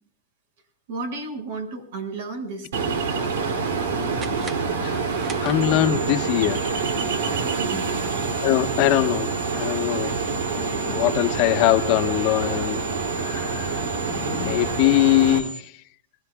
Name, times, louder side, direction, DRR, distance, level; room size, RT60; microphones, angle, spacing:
voice 1, 0.9-3.0 7.6-7.9, right 3 dB, 75° right, 4 dB, 5.8 m, -33 dB
Ocean, 2.7-15.4, right 5 dB, 90° right, 2.7 m, -26 dB
sound 1, 4.1-6.1, right 4 dB, 25° right, 1.1 m, -41 dB
voice 2, 5.4-6.6 8.4-9.3 9.5-10.1 10.5-12.8 13.2-13.8 14.1-15.7, left 14 dB, 55° left, 8 dB, 1.3 m, -22 dB
sound 2, 5.6-15.6, right 3 dB, 50° right, 5.0 m, -38 dB
24.0 x 21.0 x 2.4 m, 0.63 s
supercardioid pair, 130°, 0 cm